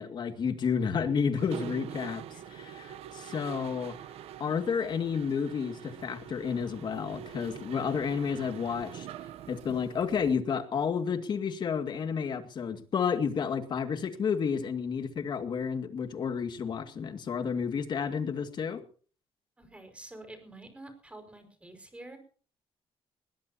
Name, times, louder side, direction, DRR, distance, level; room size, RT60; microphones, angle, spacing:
voice 1, 0.0-4.0 4.4-9.1 9.5-18.8, left 6 dB, 50° left, 8 dB, 2.2 m, -31 dB
Mechanisms, 1.4-10.3, right 10 dB, 80° right, 0.9 m, -44 dB
voice 2, 19.6-22.2, right 2 dB, 10° right, 7 dB, 5.3 m, -48 dB
20.0 x 20.0 x 2.9 m, 0.42 s
cardioid pair, 135°, 10 cm